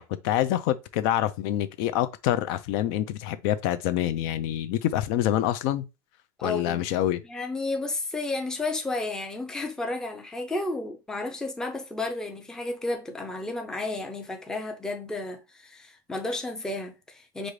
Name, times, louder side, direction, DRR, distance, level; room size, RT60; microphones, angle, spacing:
voice 1, 0.0-5.9 6.4-7.2, left 12 dB, 65° left, 0.5 m, -26 dB
voice 2, 6.4-6.8 7.2-17.5, left 2 dB, 5° left, 0.5 m, -32 dB
5.2 x 2.5 x 3.2 m
cardioid pair, 155°, 12 cm